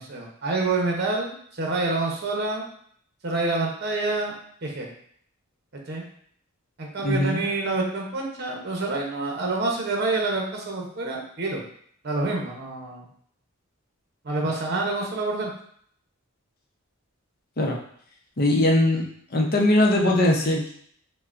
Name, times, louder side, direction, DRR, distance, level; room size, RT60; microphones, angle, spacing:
voice 1, 0.0-2.7 3.2-4.3 4.6-4.9 5.7-6.0 6.8-11.6 12.0-13.1 14.2-15.5, right 3 dB, 50° right, 0 dB, 0.8 m, -27 dB
voice 2, 7.0-7.4 17.6-17.8 18.4-19.1 19.3-20.7, left 1 dB, 50° left, 0 dB, 0.7 m, -20 dB
5.5 x 2.2 x 2.5 m, 0.62 s
head